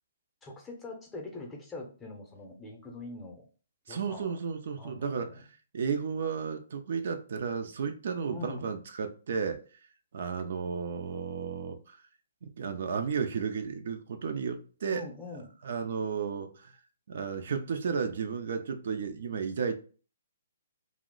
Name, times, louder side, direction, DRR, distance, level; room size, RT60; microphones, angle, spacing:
voice 1, 0.4-3.5 3.9-4.3 4.8-5.4 8.3-8.7 14.9-15.5, left 3 dB, 10° left, 0.6 m, -43 dB
voice 2, 3.9-5.5 5.7-9.6 10.1-12.0 12.4-15.0 15.6-16.7 17.1-19.8, right 6 dB, 60° right, 0.4 m, -33 dB
2.8 x 2.0 x 3.7 m
hypercardioid pair, 150°, 0 cm